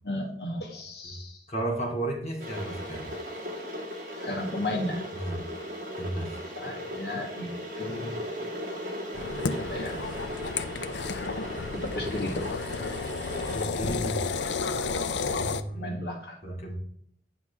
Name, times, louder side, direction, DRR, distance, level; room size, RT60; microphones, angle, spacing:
voice 1, 0.0-1.4 4.2-5.0 6.6-8.5 9.5-10.0 11.7-12.5 15.7-16.4, left 1 dB, 70° left, 0 dB, 2.2 m, -34 dB
voice 2, 1.5-3.1 5.1-5.4 6.0-6.4 13.5-14.3 15.3-16.0 16.4-16.8, right 1 dB, 40° left, -3 dB, 2.7 m, -33 dB
Water / Boiling, 2.4-13.7, equal, 50° right, 2.3 m, -37 dB
sound 1, 9.1-15.6, left 4 dB, 85° left, 0.6 m, -32 dB
9.7 x 5.9 x 3.6 m, 0.66 s
head